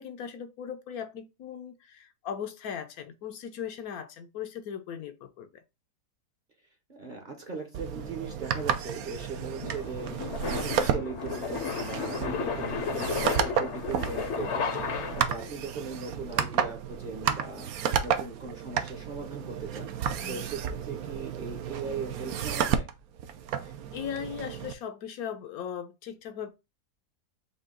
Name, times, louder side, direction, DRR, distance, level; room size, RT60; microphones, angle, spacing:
voice 1, 0.0-5.6 9.4-9.6 20.2-20.5 23.6-26.5, left 8 dB, 75° left, 1.1 m, -38 dB
voice 2, 6.9-22.9, right 4 dB, 40° right, 0.8 m, -39 dB
sound 1, 7.7-24.7, right 8 dB, 75° right, 1.1 m, -32 dB
sound 2, 7.9-15.5, left 6 dB, 55° left, 0.9 m, -34 dB
5.6 x 2.3 x 3.7 m
omnidirectional pair, 1.6 m